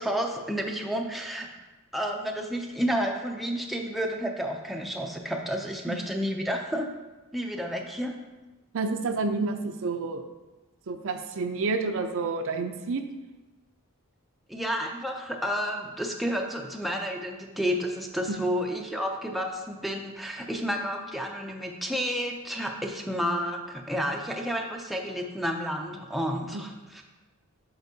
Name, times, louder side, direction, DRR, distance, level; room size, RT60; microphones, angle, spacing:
voice 1, 0.0-1.5 1.9-6.9 7.3-8.1 14.5-27.0, equal, ahead, 1 dB, 0.4 m, -31 dB
voice 2, 8.7-10.2 10.9-13.0 18.3-18.4 26.5-26.6, right 3 dB, 60° right, 7 dB, 0.5 m, -29 dB
7.9 x 5.1 x 2.8 m, 1.1 s
head